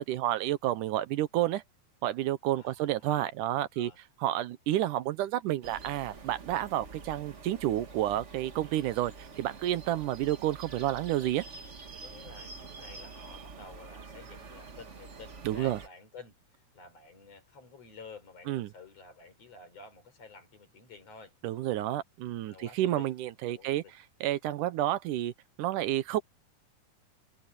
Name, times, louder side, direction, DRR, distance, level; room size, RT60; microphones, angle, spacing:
voice 1, 0.0-1.6 2.0-3.9 4.2-11.4 15.5-15.8 18.5-18.7 21.4-23.8 24.2-25.3 25.6-26.2, right 13 dB, 80° right, 2.3 m, -30 dB
voice 2, 2.5-3.0 3.4-4.0 12.0-21.4 22.4-23.1 23.5-23.9, left 4 dB, 50° left, 5.3 m, -51 dB
sound 1, 5.6-15.9, right 4 dB, 50° right, 0.8 m, -47 dB
omnidirectional pair, 3.7 m